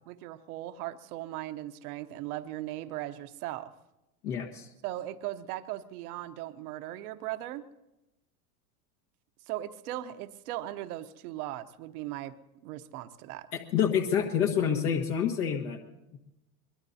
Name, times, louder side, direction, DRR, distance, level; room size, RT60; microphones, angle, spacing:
voice 1, 0.1-3.7 4.8-7.6 9.5-12.3 12.6-13.5, right 14 dB, 70° right, 10 dB, 1.0 m, -38 dB
voice 2, 4.2-4.7 13.5-15.8, left 8 dB, 70° left, 2 dB, 1.7 m, -28 dB
23.5 x 21.0 x 2.8 m, 0.94 s
hypercardioid pair, 105°, 46 cm